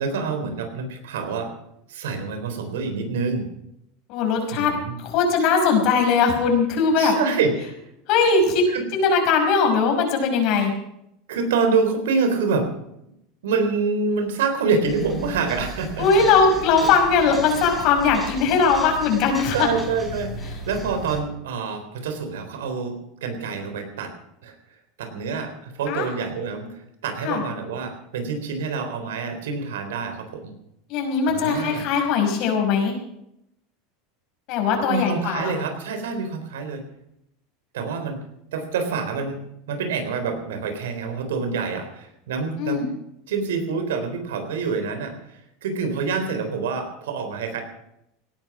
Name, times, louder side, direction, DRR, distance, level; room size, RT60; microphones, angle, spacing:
voice 1, 0.0-1.5 1.9-3.5 4.5-5.0 7.0-7.8 8.7-8.9 11.3-12.7 13.4-16.1 16.8-16.9 19.5-24.1 24.4-24.5 25.0-30.5 31.3-31.8 34.9-36.8 37.7-38.2 38.5-42.9 43.3-47.6, right 4 dB, 90° right, 7 dB, 3.8 m, -26 dB
voice 2, 4.1-4.7 5.0-7.1 8.1-8.6 8.9-10.7 16.0-19.7 25.9-26.1 27.2-27.4 30.9-32.9 34.5-35.5 42.6-42.9, left 5 dB, 55° left, 3 dB, 5.4 m, -20 dB
sound 1, 14.9-21.2, right 1 dB, ahead, 5.0 m, -36 dB
17.5 x 11.5 x 6.1 m, 0.80 s
supercardioid pair, 130°, 0 cm